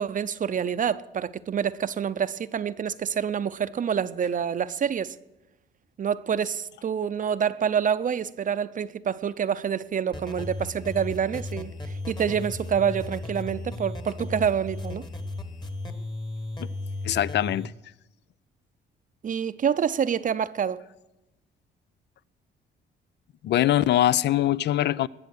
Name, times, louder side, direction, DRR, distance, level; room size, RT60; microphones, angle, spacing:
voice 1, 0.0-5.2 6.0-15.1 19.2-20.8, right 8 dB, 40° right, 0.6 m, -27 dB
sound 1, 10.1-17.7, left 2 dB, 20° left, 1.3 m, -35 dB
voice 2, 17.0-17.7 23.4-25.1, left 12 dB, 60° left, 0.4 m, -22 dB
20.5 x 7.0 x 6.4 m
cardioid pair, 90°, 20 cm